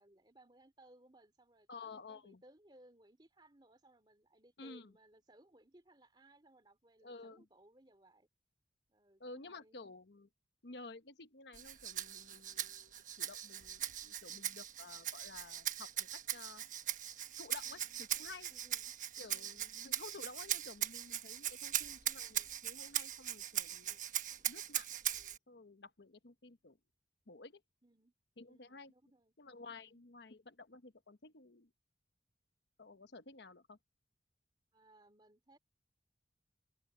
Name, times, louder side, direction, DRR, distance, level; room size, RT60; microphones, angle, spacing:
voice 1, 0.0-8.3 8.9-9.8 14.3-14.6 17.6-18.0 18.5-18.9 19.3-19.6 27.8-28.1 28.5-29.3 29.7-30.0 34.7-35.6, right 1 dB, 25° right, 3.2 m, -65 dB
voice 2, 1.7-2.4 4.6-4.9 7.0-7.5 9.2-10.3 10.6-16.6 17.4-18.5 19.2-24.0 24.4-26.8 27.3-27.6 28.4-28.9 29.4-31.7 32.8-33.8, left 3 dB, 70° left, 1.1 m, -53 dB
Rattle (instrument), 11.5-25.4, right 11 dB, 45° right, 1.4 m, -40 dB
open air
head